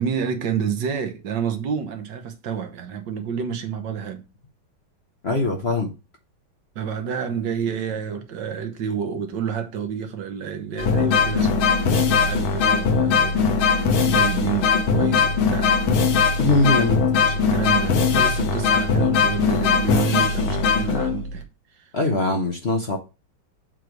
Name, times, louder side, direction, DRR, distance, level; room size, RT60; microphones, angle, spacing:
voice 1, 0.0-4.2 6.7-15.8 16.8-16.9 17.2-21.4 21.7-21.9, right 7 dB, 65° right, 1.5 m, -29 dB
voice 2, 5.2-5.9 16.4-17.0 21.9-23.0, left 2 dB, 45° left, 0.9 m, -21 dB
sound 1, 10.8-21.4, left 5 dB, 80° left, 1.7 m, -20 dB
7.9 x 3.3 x 4.6 m
omnidirectional pair, 2.3 m